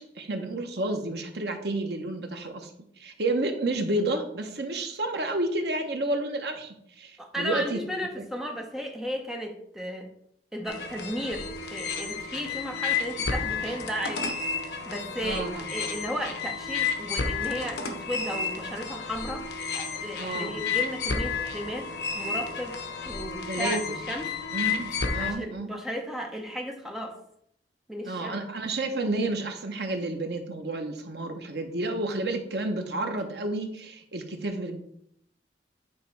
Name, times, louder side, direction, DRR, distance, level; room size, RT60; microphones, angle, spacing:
voice 1, 0.2-2.7 3.0-7.8 8.2-8.3 15.2-15.7 20.2-20.6 23.5-24.0 24.5-25.7 28.0-34.8, right 2 dB, 65° right, 5 dB, 0.9 m, -30 dB
voice 2, 7.2-10.1 10.5-14.4 14.9-19.5 19.7-22.8 23.0-23.8 24.1-24.3 25.2-27.2 27.9-28.4, equal, ahead, 1 dB, 0.9 m, -34 dB
sound 1, 10.7-25.3, left 5 dB, 65° left, 0.9 m, -31 dB
8.8 x 3.2 x 4.6 m, 0.71 s
head